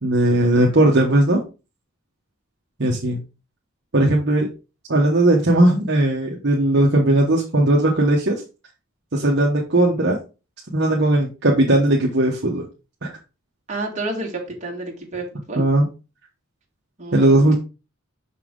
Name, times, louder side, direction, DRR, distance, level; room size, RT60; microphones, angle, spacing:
voice 1, 0.0-1.4 2.8-3.2 3.9-4.5 4.9-8.4 9.1-10.2 10.7-12.6 13.0-13.1 15.6-15.8 17.1-17.6, right 1 dB, 55° right, -2 dB, 1.1 m, -17 dB
voice 2, 13.7-15.7 17.0-17.6, right 2 dB, 35° right, -1 dB, 2.1 m, -30 dB
6.1 x 5.7 x 3.8 m, 0.30 s
head